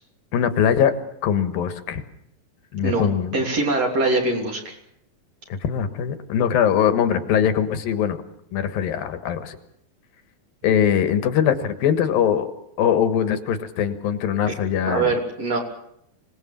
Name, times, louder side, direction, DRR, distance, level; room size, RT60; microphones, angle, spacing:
voice 1, 0.3-0.9 1.2-2.0 2.7-3.3 5.5-8.2 8.5-9.6 10.6-12.5 12.8-15.1, left 8 dB, 80° left, 9 dB, 3.3 m, -21 dB
voice 2, 2.8-4.7 14.5-14.6 14.9-15.6, right 2 dB, 45° right, 2 dB, 4.2 m, -23 dB
26.0 x 19.0 x 7.4 m, 0.76 s
omnidirectional pair, 4.2 m